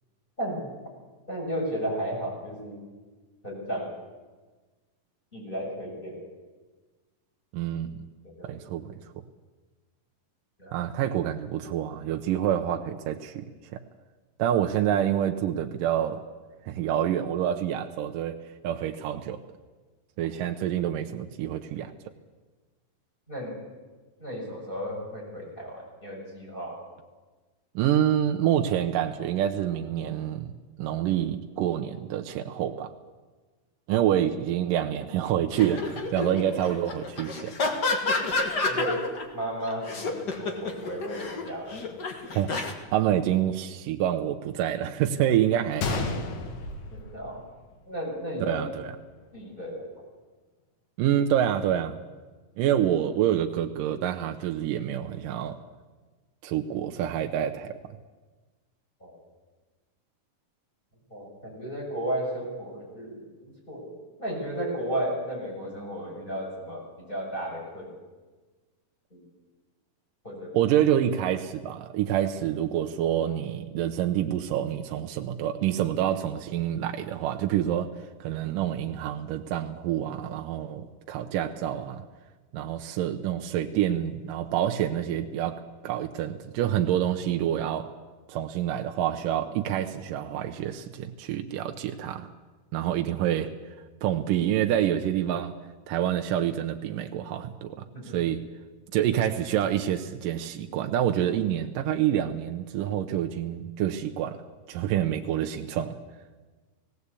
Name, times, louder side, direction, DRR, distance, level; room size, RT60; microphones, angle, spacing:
voice 1, 0.4-0.7 1.3-2.8 3.4-3.9 5.3-6.2 8.4-8.5 10.6-10.8 23.3-23.5 24.2-26.8 38.7-41.8 46.9-47.4 47.9-48.6 49.3-50.1 59.0-59.1 61.1-67.9 69.1-69.2 70.2-70.5 97.9-98.0, equal, 15° left, -3 dB, 6.6 m, -34 dB
voice 2, 7.5-8.1 8.4-8.9 10.7-13.4 13.7-13.8 14.4-16.2 16.7-19.4 20.2-21.9 27.8-30.5 30.8-32.9 33.9-37.5 42.4-42.5 42.9-46.0 48.5-48.7 51.0-52.0 52.6-55.6 56.4-57.7 70.5-77.9 78.2-82.0 82.5-87.9 88.3-92.3 92.7-93.5 94.0-95.5 95.9-97.8 98.1-98.4 98.9-104.4 104.7-106.0, right 11 dB, 75° right, 4 dB, 2.3 m, -27 dB
sound 1, 35.5-39.2 39.6-42.7, left 3 dB, 40° left, 1.6 m, -30 dB
Gunshot gunfire, 45.8-47.8 48.1-48.2 48.9-49.1, left 3 dB, 85° left, 3.4 m, -32 dB
18.0 x 17.5 x 8.3 m, 1.3 s
omnidirectional pair, 4.0 m